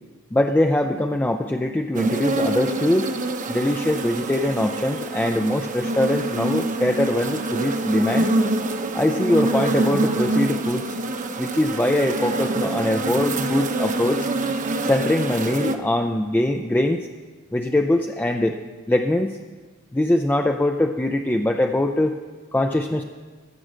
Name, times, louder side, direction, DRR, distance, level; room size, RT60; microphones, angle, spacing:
voice 1, 0.3-3.1 3.5-8.3 8.9-11.0 11.4-14.3 14.8-17.1 17.5-18.6 18.9-19.3 19.9-22.2 22.5-23.0, left 1 dB, 10° left, 4 dB, 0.4 m, -22 dB
sound 1, 1.9-15.7, right 2 dB, 35° right, 0.8 m, -25 dB
15.0 x 7.6 x 6.3 m, 1.4 s
head